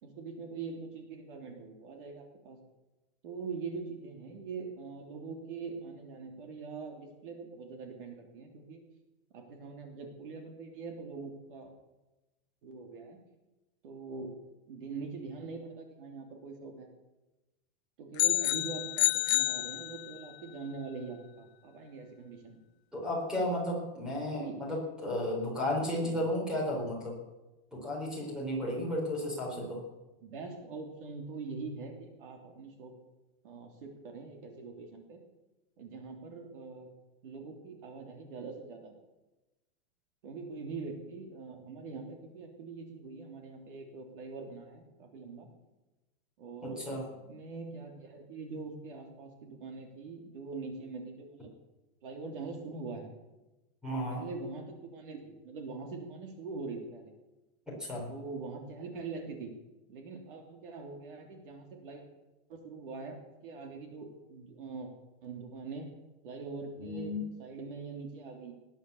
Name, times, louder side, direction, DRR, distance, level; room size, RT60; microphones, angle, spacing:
voice 1, 0.0-2.6 3.2-8.8 9.3-11.7 12.6-13.2 13.8-14.3 14.7-16.9 18.0-22.6 24.3-24.6 26.0-26.2 29.5-29.7 30.2-32.9 33.4-35.2 35.8-36.9 37.2-38.9 40.2-45.5 46.4-47.0 47.2-51.5 52.0-53.1 54.1-57.1 58.1-59.5 59.9-62.0 62.5-63.2 63.4-64.9 65.2-65.9 66.2-68.5, right 4 dB, 55° right, 3 dB, 3.1 m, -43 dB
sound 1, 18.2-20.4, left 16 dB, 90° left, 0.6 m, -29 dB
voice 2, 22.9-27.2 27.7-29.8 46.9-47.0 53.8-54.2 57.8-58.1 66.8-67.3, left 1 dB, ahead, -3 dB, 4.2 m, -33 dB
19.5 x 9.9 x 7.1 m, 1.0 s
supercardioid pair, 180°, 31 cm